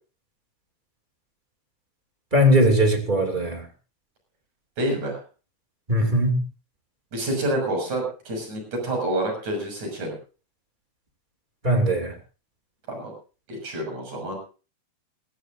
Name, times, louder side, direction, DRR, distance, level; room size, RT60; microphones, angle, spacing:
voice 1, 2.3-3.7 5.9-6.4 11.6-12.1, equal, 15° right, 3 dB, 2.2 m, -20 dB
voice 2, 4.8-5.2 7.1-10.1 12.9-13.1 13.5-14.4, right 1 dB, 50° right, 2 dB, 7.8 m, -28 dB
21.5 x 15.5 x 2.7 m, 0.35 s
omnidirectional pair, 4.3 m